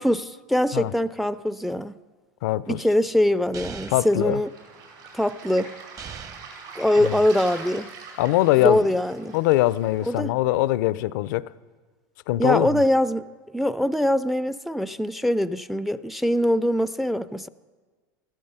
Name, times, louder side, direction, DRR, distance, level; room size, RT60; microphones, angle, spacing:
voice 1, 0.0-1.9 2.7-4.5 5.1-5.7 6.8-7.9 8.6-9.4 10.1-10.3 12.4-13.3 13.5-17.5, left 1 dB, ahead, 0.4 m, -23 dB
voice 2, 2.4-2.8 3.9-4.4 7.0-7.1 8.2-8.9 9.3-11.5 12.3-12.8, left 16 dB, 70° left, 0.4 m, -22 dB
sound 1, 3.5-4.2 6.0-6.6, right 7 dB, 35° right, 0.8 m, -39 dB
Waves surf, 4.2-10.2, right 4 dB, 70° right, 4.6 m, -43 dB
14.5 x 12.5 x 5.5 m
hypercardioid pair, 95°, 10 cm